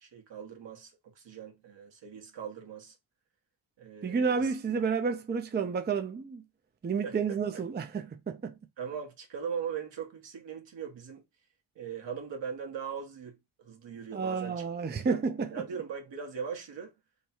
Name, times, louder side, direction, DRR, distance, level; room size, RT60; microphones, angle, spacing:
voice 1, 0.0-2.9 3.8-4.5 7.0-7.4 8.8-11.2 11.7-15.2 15.5-16.9, right 7 dB, 65° right, 1.3 m, -40 dB
voice 2, 4.0-6.4 6.8-8.5 14.1-15.5, right 5 dB, 20° right, 0.5 m, -30 dB
3.2 x 2.3 x 4.2 m
cardioid pair, 65°, 47 cm